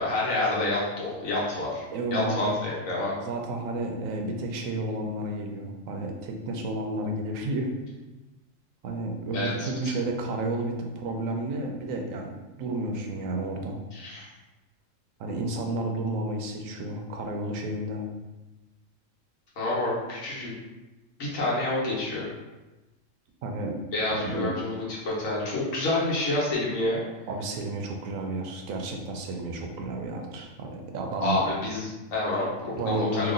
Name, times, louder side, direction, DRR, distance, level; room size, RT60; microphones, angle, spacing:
voice 1, 0.0-1.8 2.1-3.1 9.3-9.7 13.9-14.2 19.6-20.5 21.2-22.2 23.9-24.7 25.0-27.0 31.2-33.3, left 2 dB, 80° left, -5 dB, 1.5 m, -28 dB
voice 2, 1.9-2.6 3.2-7.7 8.8-13.8 15.2-18.1 23.4-23.7 24.1-24.5 27.3-31.4 32.7-33.3, right 2 dB, 85° right, 2 dB, 1.0 m, -31 dB
2.9 x 2.9 x 3.8 m, 1.1 s
omnidirectional pair, 1.4 m